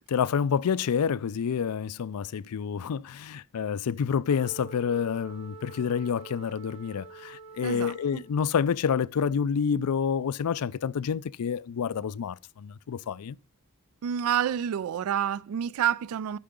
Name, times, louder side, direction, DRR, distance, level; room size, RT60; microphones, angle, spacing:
voice 1, 0.0-13.4, left 7 dB, 85° left, 0.4 m, -28 dB
Wind instrument woodwind instrument, 4.2-8.6, right 4 dB, 25° right, 2.1 m, -47 dB
voice 2, 7.6-8.2 14.0-16.4, right 9 dB, 70° right, 0.3 m, -28 dB
10.0 x 5.8 x 3.6 m
head